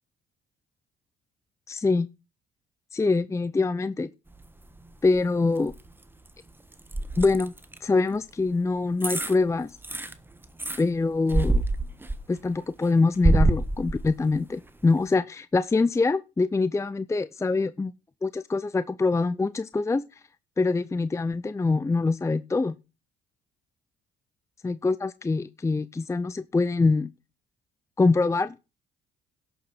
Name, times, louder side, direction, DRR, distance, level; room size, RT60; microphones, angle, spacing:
voice 1, 1.7-2.1 2.9-4.1 5.0-5.7 7.2-7.5 7.8-9.7 10.8-11.6 12.3-17.9 18.2-20.0 20.6-22.8 24.6-27.1 28.0-28.5, left 3 dB, 15° left, 0.6 m, -24 dB
sound 1, 4.3-5.2 5.6-7.8 8.5-8.6 9.0-9.4 9.7-10.8 11.3-12.5 12.8-14.4 14.8-14.9, right 2 dB, 10° right, 1.4 m, -26 dB
12.0 x 6.7 x 6.0 m
supercardioid pair, 80°, 18 cm